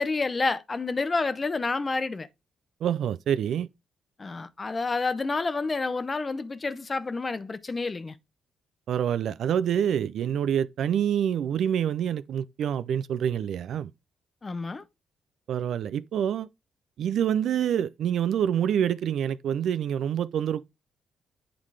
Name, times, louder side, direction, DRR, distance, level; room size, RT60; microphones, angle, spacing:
voice 1, 0.0-2.3 4.2-8.1 14.4-14.8, left 3 dB, 30° left, 0.8 m, -29 dB
voice 2, 2.8-3.7 8.9-13.9 15.5-16.5 17.0-20.6, right 9 dB, 70° right, 0.4 m, -26 dB
8.5 x 3.9 x 4.7 m
cardioid pair, 90°, 0 cm